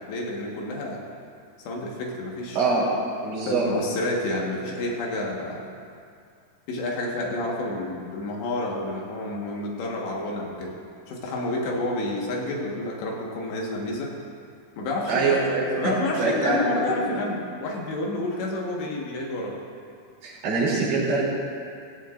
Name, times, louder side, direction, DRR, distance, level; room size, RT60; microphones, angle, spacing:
voice 1, 0.1-1.0 1.6-2.6 3.5-5.7 6.7-10.8 11.1-14.1 14.8-15.5 15.8-19.6, left 2 dB, 75° left, -2 dB, 3.7 m, -29 dB
voice 2, 2.6-2.9 3.2-3.6 15.1-16.8 20.2-21.2, right 3 dB, 85° right, -6 dB, 5.5 m, -24 dB
17.5 x 16.0 x 2.6 m, 2.3 s
omnidirectional pair, 5.2 m